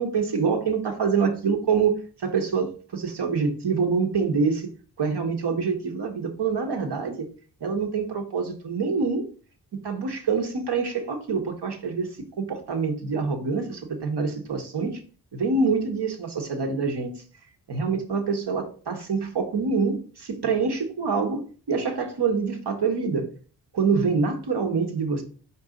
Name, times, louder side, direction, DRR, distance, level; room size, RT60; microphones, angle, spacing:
voice 1, 0.0-4.7 5.0-7.3 7.6-9.2 9.8-15.0 15.3-17.1 17.7-21.4 21.7-23.3 23.7-25.2, right 5 dB, 70° right, 4 dB, 1.6 m, -26 dB
5.3 x 4.4 x 5.2 m, 0.40 s
wide cardioid pair, 95°, 42 cm